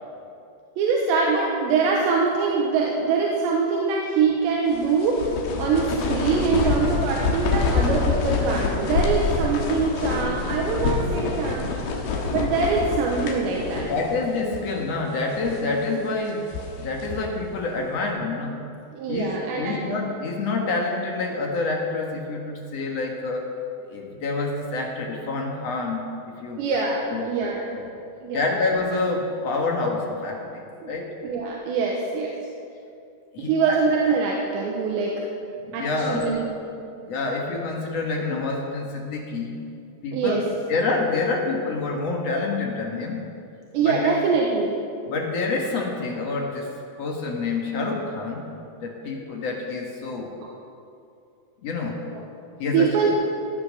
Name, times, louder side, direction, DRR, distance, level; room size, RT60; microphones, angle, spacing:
voice 1, 0.8-5.2 5.6-11.7 12.3-13.9 18.9-19.8 26.6-27.7 28.2-28.5 30.8-30.9 31.2-32.3 33.4-35.1 35.7-36.5 40.1-40.4 43.7-44.8 52.1-52.2 52.7-53.1, right 5 dB, 85° right, -2 dB, 3.4 m, -23 dB
sound 1, 4.7-14.2 14.5-14.6 15.2-15.7 16.3-17.4, left 4 dB, 70° left, 3.2 m, -26 dB
voice 2, 13.9-16.5 16.8-18.6 19.1-19.3 19.6-23.5 23.8-26.7 27.1-27.9 28.3-30.4 30.8-31.1 33.3-33.8 35.6-36.4 36.8-39.6 40.0-40.4 40.7-43.2 43.8-44.1 45.1-46.7 47.0-48.5 48.8-50.3 51.6-52.1 52.6-53.0, left 3 dB, 55° left, 0 dB, 1.9 m, -27 dB
16.5 x 9.8 x 6.6 m, 2.6 s
omnidirectional pair, 5.0 m